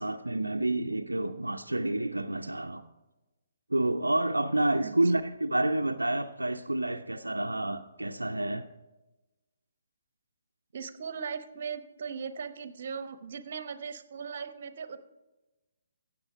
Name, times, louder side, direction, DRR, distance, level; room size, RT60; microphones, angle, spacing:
voice 1, 0.0-2.8 3.7-8.6, right 1 dB, 85° right, 5 dB, 0.5 m, -29 dB
voice 2, 4.8-5.2 10.7-15.0, right 6 dB, 50° right, 12 dB, 0.9 m, -38 dB
15.0 x 7.9 x 5.0 m, 1.1 s
figure-of-eight pair, 135°, 0 cm